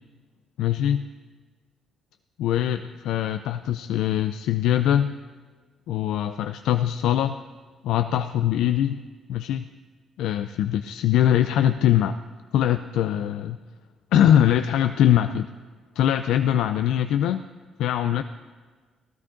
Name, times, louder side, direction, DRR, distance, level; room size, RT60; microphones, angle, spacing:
voice 1, 0.6-1.1 2.4-5.2 5.9-7.4 7.8-9.7 10.2-12.2 12.5-13.6 14.1-15.5 16.0-17.4 17.8-18.2, left 11 dB, 85° left, 9 dB, 0.4 m, -22 dB
17.0 x 13.0 x 3.8 m, 1.4 s
cardioid pair, 90°, 0 cm